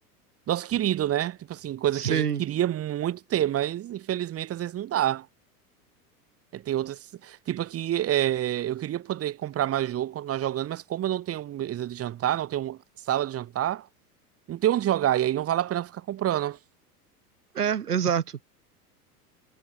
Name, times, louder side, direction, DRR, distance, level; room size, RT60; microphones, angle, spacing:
voice 1, 0.5-5.3 6.5-12.8 13.1-13.9 14.5-16.6, right 12 dB, 30° right, 2.4 m, -28 dB
voice 2, 1.9-2.4 17.5-18.4, right 8 dB, 80° right, 1.4 m, -26 dB
figure-of-eight pair, 85°, 46 cm